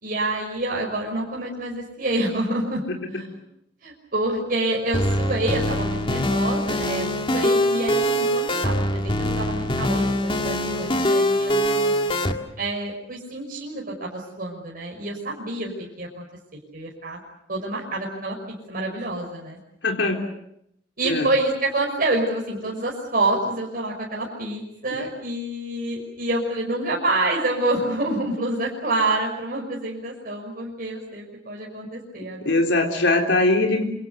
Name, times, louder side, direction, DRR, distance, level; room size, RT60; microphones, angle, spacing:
voice 1, 0.0-2.8 3.1-3.2 3.8-11.9 12.6-15.7 16.0-16.2 16.7-17.2 17.5-19.6 21.0-32.6, right 2 dB, 50° right, -2 dB, 5.8 m, -27 dB
sound 1, 4.9-12.3, equal, 30° left, 2.1 m, -23 dB
voice 2, 19.8-20.2 21.0-21.3 32.2-33.8, left 2 dB, 75° left, 2 dB, 3.7 m, -21 dB
28.5 x 26.0 x 6.8 m, 0.77 s
head